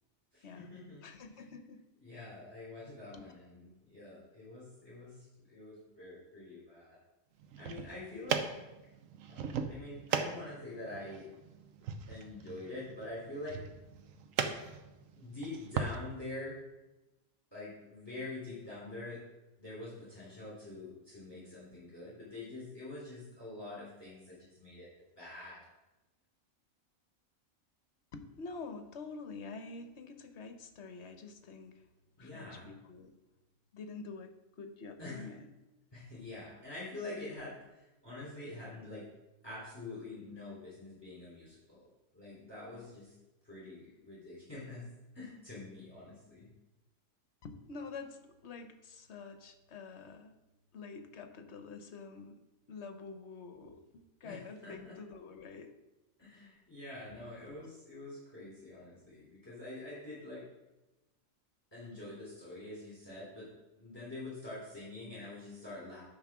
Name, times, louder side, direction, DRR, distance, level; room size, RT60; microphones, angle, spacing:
voice 1, 0.3-1.0 2.0-7.0 7.6-8.5 9.3-11.3 12.1-13.6 15.2-16.6 17.5-19.2 19.6-24.9 25.2-25.6 32.2-32.7 35.0-35.3 35.9-39.0 39.4-41.8 42.1-43.1 43.4-44.8 45.1-46.5 54.2-55.0 56.2-60.4 61.7-63.5 63.8-66.0, left 2 dB, 15° left, -8 dB, 3.4 m, -46 dB
voice 2, 1.0-1.8 3.1-3.2 28.1-31.9 32.2-33.1 33.7-35.5 47.4-50.4 50.7-52.4 52.7-55.7 57.5-57.6, left 4 dB, 55° left, 7 dB, 1.1 m, -47 dB
sound 1, 7.4-15.9, right 6 dB, 70° right, 1.1 m, -39 dB
10.5 x 3.7 x 6.0 m, 1.0 s
omnidirectional pair, 1.4 m